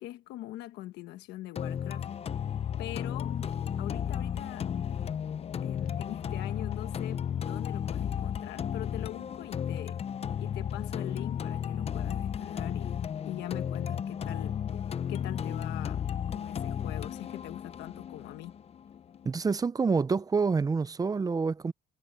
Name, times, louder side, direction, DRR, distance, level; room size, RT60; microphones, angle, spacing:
voice 1, 0.0-2.1 2.8-3.4 3.8-4.7 5.6-10.0 10.4-14.6 15.1-16.0 16.3-18.5, left 15 dB, 85° left, 1.2 m, -42 dB
sound 1, 1.6-19.5, left 8 dB, 35° left, 0.6 m, -34 dB
sound 2, 1.8-6.8, left 12 dB, 60° left, 1.2 m, -49 dB
voice 2, 19.2-21.7, right 4 dB, 20° right, 0.6 m, -27 dB
cardioid pair, 110°, 17 cm